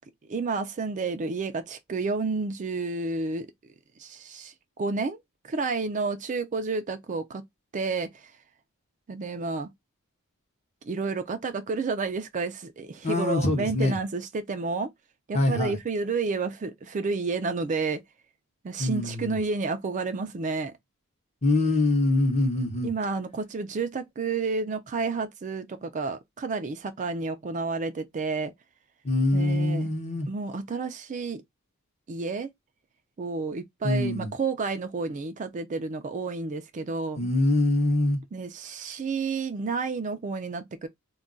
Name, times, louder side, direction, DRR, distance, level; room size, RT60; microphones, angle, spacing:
voice 1, 0.3-3.5 4.0-5.2 5.4-7.4 7.7-8.3 9.1-9.7 10.8-14.9 15.3-18.0 18.6-20.7 22.8-28.5 29.3-29.9 30.3-31.4 32.1-32.5 33.2-37.2 38.3-40.9, right 4 dB, 35° right, 0.4 m, -30 dB
voice 2, 13.0-13.9 15.3-15.8 18.8-19.4 21.4-22.9 29.0-30.3 33.8-34.3 37.2-38.2, left 2 dB, 30° left, 0.8 m, -24 dB
2.3 x 2.2 x 3.7 m
head